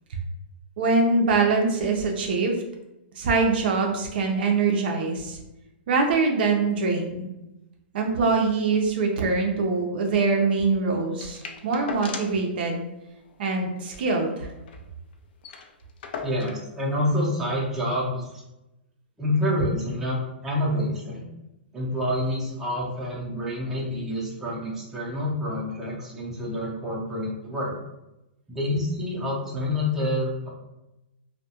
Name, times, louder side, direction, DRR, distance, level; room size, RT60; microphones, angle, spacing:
voice 1, 0.8-2.6 3.2-5.4 5.9-7.3 7.9-12.8 13.4-14.3, right 4 dB, 60° right, 2 dB, 0.5 m, -23 dB
sound 1, 11.2-12.5 12.8-12.9 13.2-13.4 13.8-14.9 15.1-15.2 15.4-16.7 17.6-17.7, left 5 dB, 55° left, 0.4 m, -38 dB
voice 2, 16.2-18.3 19.2-20.2 20.4-21.3 21.7-27.7 28.5-30.5, left 1 dB, 5° right, -5 dB, 0.6 m, -27 dB
2.2 x 2.1 x 2.8 m, 0.93 s
hypercardioid pair, 150°, 6 cm